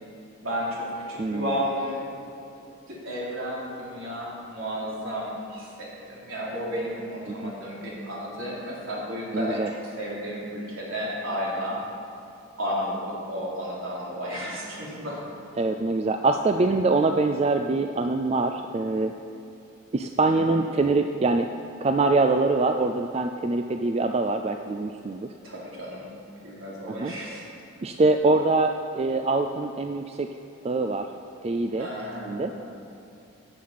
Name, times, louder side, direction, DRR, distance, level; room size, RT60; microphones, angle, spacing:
voice 1, 0.4-2.1 2.9-9.6 10.0-11.8 12.6-15.2 20.2-20.6 25.4-26.1 26.4-27.4 31.7-32.8, equal, 70° right, -6 dB, 3.5 m, -32 dB
voice 2, 1.2-1.6 7.3-7.5 9.3-9.7 15.6-19.1 19.9-21.5 21.8-25.3 26.9-27.1 27.8-30.3 30.6-31.1 31.4-31.9 32.3-32.5, right 3 dB, 30° right, 6 dB, 0.3 m, -24 dB
14.5 x 7.5 x 5.8 m, 2.6 s
head